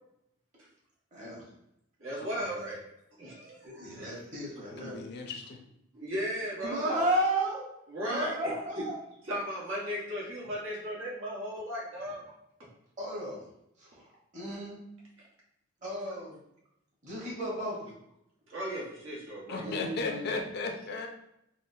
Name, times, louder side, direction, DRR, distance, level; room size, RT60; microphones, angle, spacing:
voice 1, 1.1-1.5 2.3-2.7 3.6-5.2 6.6-7.7 8.0-9.0 12.0-12.1 13.0-13.5 13.8-14.1 14.3-14.8 15.8-16.4 17.0-18.0 19.6-20.3, right 1 dB, 40° right, -5 dB, 1.2 m, -34 dB
voice 2, 2.0-2.8 3.2-3.9 5.9-6.9 7.9-8.3 9.3-12.2 18.5-19.7, equal, 80° right, -5 dB, 1.2 m, -36 dB
voice 3, 4.8-5.6 19.5-21.1, left 3 dB, 55° left, 3 dB, 0.4 m, -35 dB
3.8 x 2.1 x 2.6 m, 0.79 s
head